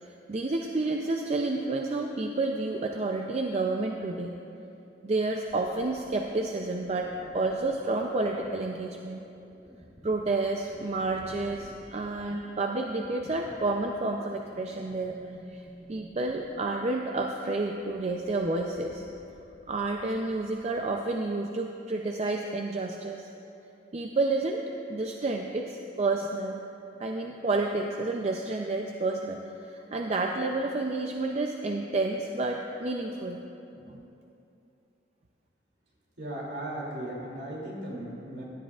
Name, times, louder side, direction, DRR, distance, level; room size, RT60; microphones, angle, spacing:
voice 1, 0.0-4.4 5.0-9.2 10.0-15.2 15.5-15.6 15.9-19.0 19.7-23.3 23.9-24.6 24.9-26.6 27.0-33.4 33.9-34.0, right 2 dB, 35° right, 2 dB, 0.4 m, -30 dB
sound 1, 5.5-20.9, equal, 15° right, 0.9 m, -53 dB
voice 2, 36.2-38.4, right 1 dB, 65° right, -4 dB, 2.7 m, -37 dB
17.0 x 11.0 x 2.4 m, 2.8 s
head